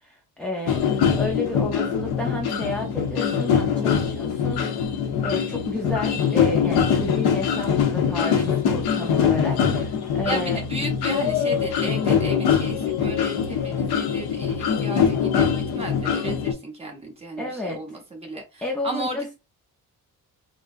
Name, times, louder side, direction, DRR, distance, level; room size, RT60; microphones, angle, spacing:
voice 1, 0.0-0.8 1.1-4.7 5.2-10.6 17.4-18.0 18.6-19.3, left 2 dB, 5° left, 0.3 m, -31 dB
sound 1, 0.7-16.5, left 7 dB, 80° left, 0.8 m, -23 dB
voice 2, 8.1-8.5 10.2-19.3, right 2 dB, 15° right, 0.8 m, -34 dB
3.7 x 2.0 x 2.4 m
cardioid pair, 170°, 37 cm